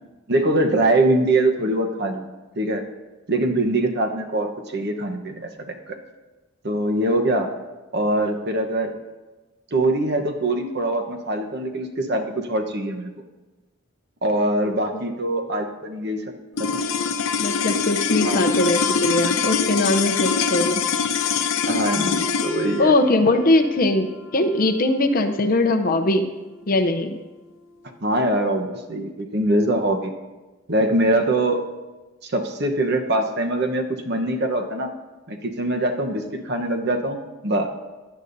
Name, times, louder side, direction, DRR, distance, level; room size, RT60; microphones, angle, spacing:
voice 1, 0.3-2.2 2.6-2.8 3.3-6.0 6.6-7.5 7.9-8.9 9.7-13.1 14.2-16.2 18.2-18.9 21.7-22.9 28.0-30.1 30.7-31.6 32.2-34.9 35.3-37.2 37.4-37.7, right 1 dB, 50° right, 4 dB, 1.0 m, -23 dB
sound 1, 16.5-27.0, left 5 dB, 80° left, 0.7 m, -25 dB
voice 2, 17.4-20.8 22.8-24.1 24.3-26.3 26.7-27.2, left 2 dB, 45° left, 7 dB, 0.6 m, -20 dB
16.5 x 10.5 x 2.7 m, 1.2 s
head